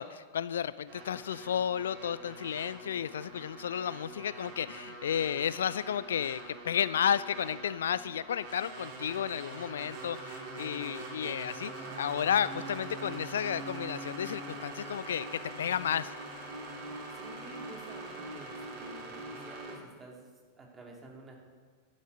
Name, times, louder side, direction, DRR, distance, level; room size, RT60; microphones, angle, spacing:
voice 1, 0.0-16.1, left 9 dB, 65° left, 17 dB, 0.3 m, -32 dB
sound 1, 0.9-19.7, right 2 dB, 45° right, 3.5 m, -44 dB
voice 2, 17.1-21.4, right 3 dB, 20° right, -1 dB, 3.0 m, -50 dB
11.5 x 10.5 x 6.4 m, 1.5 s
figure-of-eight pair, 90°, 0 cm